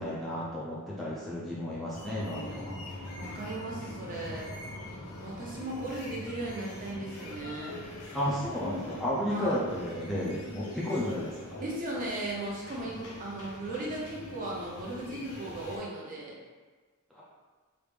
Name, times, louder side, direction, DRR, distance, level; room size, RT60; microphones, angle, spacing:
voice 1, 0.0-2.8 8.1-11.6 17.1-17.2, left 1 dB, ahead, -8 dB, 0.4 m, -33 dB
sound 1, 1.9-15.8, left 1 dB, 85° left, 0.6 m, -43 dB
voice 2, 3.2-4.5 5.2-7.8 9.2-9.5 11.6-16.3, right 2 dB, 40° right, -4 dB, 0.7 m, -37 dB
3.1 x 2.5 x 3.4 m, 1.4 s
head